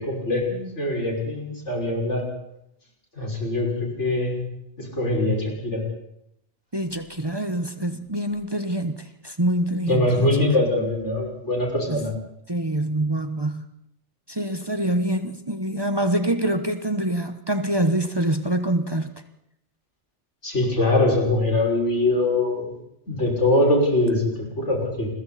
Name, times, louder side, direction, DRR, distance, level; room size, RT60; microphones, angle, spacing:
voice 1, 0.0-2.2 3.2-4.4 4.8-5.8 9.9-12.1 20.4-22.7 23.1-25.1, left 2 dB, 85° left, -1 dB, 6.4 m, -23 dB
voice 2, 6.7-10.3 11.9-12.0 12.5-13.6 14.3-19.1, right 1 dB, 20° right, 8 dB, 1.1 m, -25 dB
29.5 x 22.0 x 4.3 m, 0.78 s
omnidirectional pair, 1.2 m